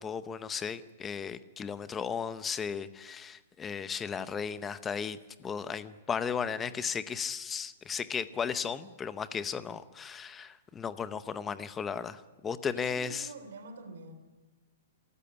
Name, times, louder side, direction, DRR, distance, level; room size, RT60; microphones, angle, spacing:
voice 1, 0.0-13.3, left 6 dB, 10° left, 13 dB, 0.7 m, -35 dB
voice 2, 6.5-6.8 12.7-14.1, right 3 dB, 70° right, 9 dB, 3.0 m, -47 dB
27.0 x 14.0 x 9.6 m, 1.2 s
hypercardioid pair, 175°, 0 cm